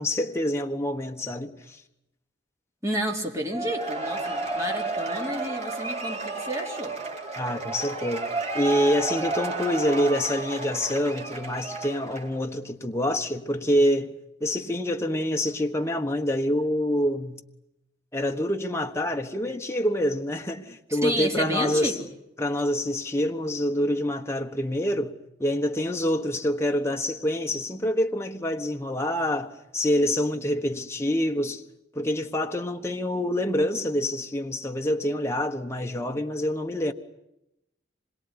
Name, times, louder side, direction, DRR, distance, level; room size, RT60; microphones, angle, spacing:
voice 1, 0.0-1.8 7.4-8.3 8.5-14.1 14.4-17.4 18.1-21.9 22.4-25.1 25.4-31.6 31.9-36.9, left 1 dB, 15° left, 1.3 m, -26 dB
voice 2, 2.8-6.9 20.9-22.1, right 1 dB, 15° right, 3.7 m, -31 dB
Cheering / Applause / Crowd, 3.5-12.4, right 3 dB, 35° right, 3.7 m, -32 dB
26.5 x 22.5 x 9.8 m
head